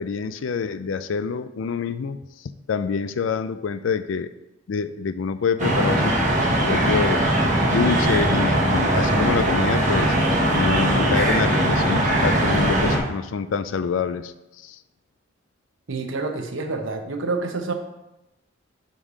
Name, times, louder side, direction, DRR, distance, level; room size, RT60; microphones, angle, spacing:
voice 1, 0.0-4.3 4.7-6.1 6.4-7.3 7.7-10.2 10.6-14.3 14.6-14.8, left 5 dB, 80° left, 13 dB, 0.4 m, -26 dB
sound 1, 5.6-13.0, right 1 dB, 40° right, 1.2 m, -20 dB
voice 2, 15.9-17.7, right 3 dB, 85° right, 5 dB, 0.9 m, -28 dB
5.6 x 5.2 x 4.8 m, 0.96 s
head